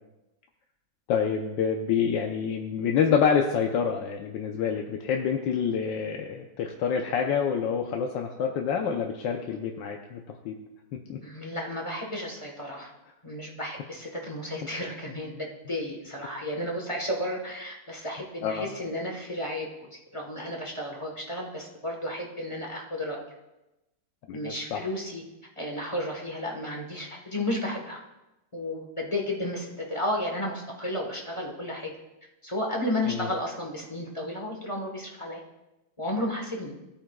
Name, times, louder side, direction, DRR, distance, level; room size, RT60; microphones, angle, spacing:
voice 1, 1.1-10.6 10.9-11.2 18.4-18.7 24.3-24.8 33.1-33.3, left 7 dB, 90° left, 2 dB, 1.5 m, -27 dB
voice 2, 11.2-12.9 13.2-23.2 24.3-25.2 25.6-28.0 28.5-31.9 32.4-35.4 36.0-36.7, left 1 dB, 20° left, 0 dB, 1.1 m, -33 dB
17.0 x 8.8 x 2.3 m, 0.98 s
omnidirectional pair, 1.9 m